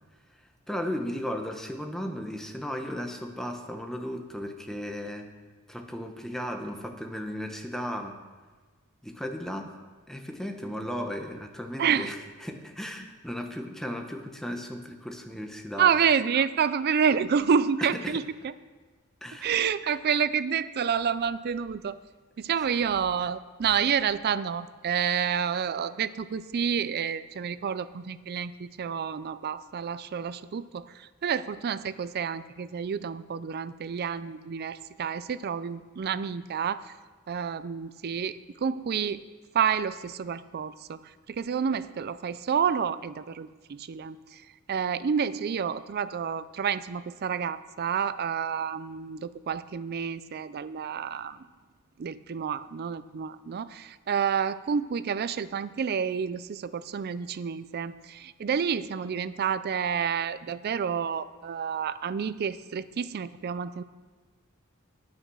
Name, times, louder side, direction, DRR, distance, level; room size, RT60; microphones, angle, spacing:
voice 1, 0.7-5.3 5.7-8.1 9.0-9.8 10.1-15.9 17.9-18.2 19.2-19.6, equal, ahead, 4 dB, 1.0 m, -35 dB
voice 2, 11.8-12.1 15.8-18.5 19.4-22.0 22.4-36.9 37.3-39.2 39.5-44.4 44.7-51.5 52.0-63.8, right 7 dB, 50° right, 15 dB, 0.4 m, -29 dB
9.5 x 8.9 x 6.2 m, 1.4 s
head